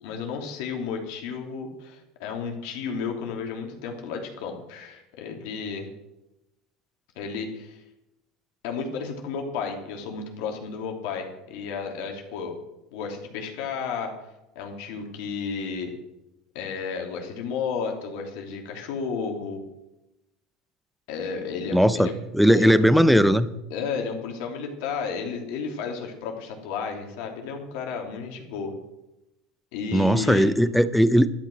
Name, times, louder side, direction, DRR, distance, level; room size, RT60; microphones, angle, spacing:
voice 1, 0.0-5.9 7.1-7.8 8.6-12.6 12.9-14.1 14.5-15.9 16.5-19.6 21.1-22.1 22.5-22.9 23.7-28.7 29.7-30.5, left 5 dB, 75° left, 2 dB, 3.0 m, -32 dB
voice 2, 21.7-23.5 29.9-31.3, equal, ahead, 14 dB, 0.6 m, -18 dB
12.0 x 11.5 x 6.2 m, 0.93 s
cardioid pair, 145°, 0 cm